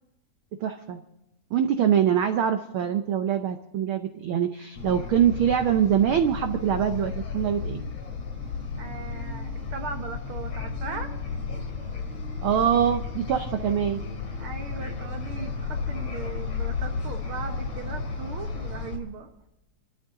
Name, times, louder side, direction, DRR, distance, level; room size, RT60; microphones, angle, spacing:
voice 1, 0.6-1.0 1.5-7.8 12.4-14.0, right 9 dB, 90° right, 7 dB, 1.1 m, -24 dB
sound 1, 4.7-19.0, left 5 dB, 55° left, 3.7 m, -33 dB
voice 2, 8.8-11.2 14.4-19.3, right 5 dB, 60° right, 6 dB, 1.5 m, -38 dB
28.0 x 12.5 x 3.8 m, 0.93 s
omnidirectional pair, 3.3 m